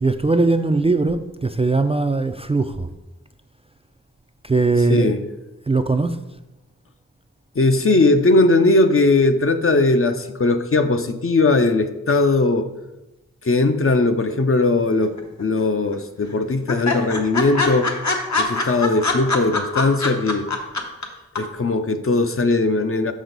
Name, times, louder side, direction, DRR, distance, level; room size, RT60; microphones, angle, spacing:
voice 1, 0.0-2.9 4.4-5.1 5.7-6.2, right 3 dB, 20° right, 7 dB, 0.3 m, -20 dB
voice 2, 4.9-5.2 7.6-12.7 13.4-17.9 18.4-20.5 21.4-23.1, left 2 dB, 45° left, 8 dB, 0.6 m, -19 dB
sound 1, 15.0-15.6 15.9-16.0 16.3-16.4 16.7-21.0 21.3-21.4, left 3 dB, 60° left, 1.0 m, -23 dB
6.2 x 6.2 x 3.9 m, 1.0 s
wide cardioid pair, 60°, 32 cm